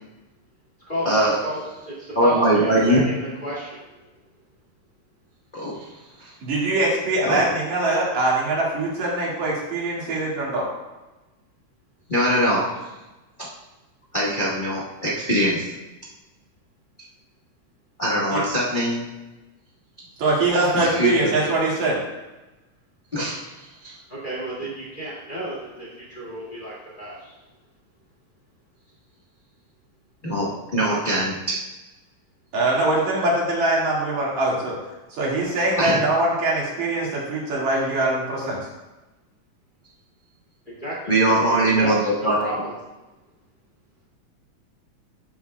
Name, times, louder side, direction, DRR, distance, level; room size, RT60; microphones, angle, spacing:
voice 1, 1.0-1.4 2.1-3.0 5.5-5.9 6.2-6.3 7.2-7.4 12.1-12.8 14.1-15.7 18.0-19.1 20.7-21.3 23.1-23.5 23.8-24.0 30.2-31.6 35.8-36.0 41.1-42.4, right 1 dB, 80° left, -7 dB, 0.4 m, -22 dB
voice 2, 1.9-3.8 24.1-27.4 40.7-42.1 42.4-42.7, equal, 20° left, -6 dB, 1.9 m, -32 dB
voice 3, 6.4-10.7 18.3-18.4 20.2-22.0 32.5-34.7 35.1-38.6, right 2 dB, 75° right, -4 dB, 3.4 m, -22 dB
12.0 x 7.3 x 2.3 m, 1.1 s
omnidirectional pair, 3.4 m